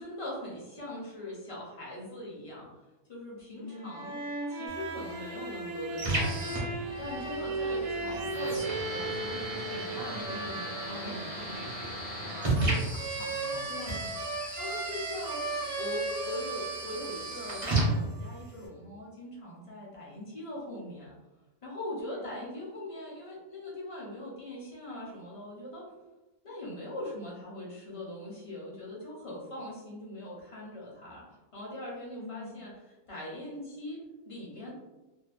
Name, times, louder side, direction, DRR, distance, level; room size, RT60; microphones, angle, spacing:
voice 1, 0.0-2.7 3.1-4.1 4.5-6.7 7.0-11.2 14.6-15.4 15.8-21.1 21.6-25.9 26.4-31.2 31.5-32.7 33.1-34.7, left 1 dB, 35° left, -5 dB, 0.5 m, -41 dB
voice 2, 3.6-4.1 12.2-14.1 22.0-22.5 32.2-32.6, left 3 dB, 80° left, 1 dB, 1.0 m, -44 dB
sound 1, 3.7-18.3, right 3 dB, 80° right, 1.0 m, -37 dB
sound 2, 4.7-18.7, right 2 dB, 35° right, 0.6 m, -35 dB
2.6 x 2.0 x 2.4 m, 1.1 s
omnidirectional pair, 1.4 m